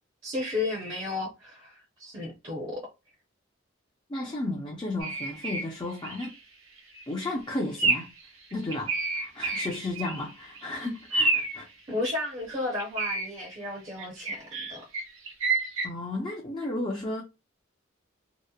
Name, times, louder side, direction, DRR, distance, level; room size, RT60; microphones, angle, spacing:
voice 1, 0.2-2.8 11.9-14.9, left 2 dB, 30° right, 0.6 m, -33 dB
voice 2, 4.1-6.3 7.1-8.1 8.5-11.7 15.8-17.2, left 2 dB, 20° left, 0.4 m, -33 dB
sound 1, 5.0-5.7 6.0-6.3 6.8-7.0 7.8-8.2 8.5-10.3 10.6-10.7 11.1-11.6 12.5-13.3 14.0-15.9, right 3 dB, 85° right, 0.8 m, -29 dB
2.8 x 2.0 x 2.2 m
head